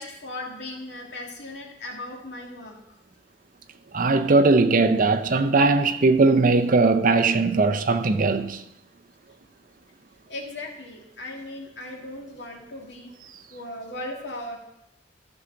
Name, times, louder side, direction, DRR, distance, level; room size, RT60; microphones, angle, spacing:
voice 1, 0.0-2.7 10.3-13.1 13.5-14.6, left 1 dB, 85° left, 1.9 m, -37 dB
voice 2, 3.9-8.6, right 3 dB, 50° right, 0.6 m, -19 dB
13.5 x 5.9 x 3.9 m
head